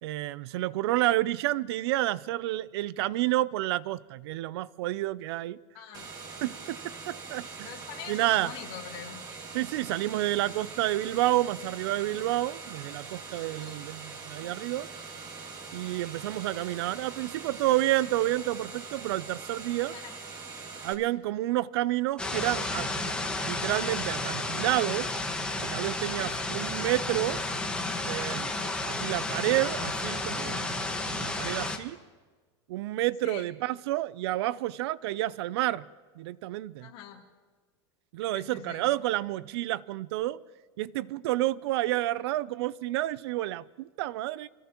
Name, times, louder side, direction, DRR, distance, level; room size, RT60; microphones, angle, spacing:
voice 1, 0.0-5.6 6.4-7.7 8.1-8.5 9.5-14.9 15.7-19.9 20.8-23.1 23.4-25.1 25.6-27.4 28.1-28.5 28.8-32.0 32.7-35.8 36.2-36.9 38.1-40.4 40.8-44.5, right 16 dB, 70° right, 0.5 m, -30 dB
voice 2, 5.7-6.1 7.6-9.2 13.5-13.8 19.9-20.1 26.2-26.5 33.2-33.5 36.8-37.2 38.3-38.8, left 10 dB, 55° left, 3.2 m, -44 dB
sound 1, 5.9-20.9, right 4 dB, 30° right, 2.2 m, -43 dB
sound 2, 22.2-31.8, left 2 dB, 5° left, 1.4 m, -32 dB
28.0 x 16.0 x 3.0 m
supercardioid pair, 140°, 14 cm